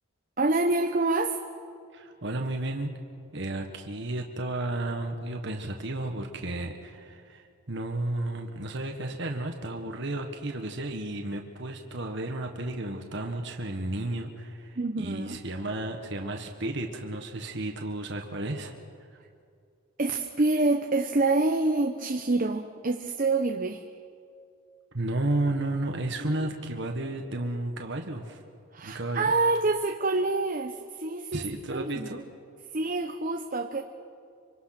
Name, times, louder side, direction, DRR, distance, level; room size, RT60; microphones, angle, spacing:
voice 1, 0.4-1.4 14.8-15.4 20.0-23.9 26.2-26.5 28.7-32.1 32.7-33.8, right 2 dB, 40° right, 5 dB, 0.8 m, -27 dB
voice 2, 1.9-2.9 3.3-18.7 24.9-28.4 28.8-29.3 31.3-32.2, right 2 dB, 55° right, 3 dB, 1.6 m, -33 dB
25.5 x 25.5 x 6.0 m, 2.4 s
head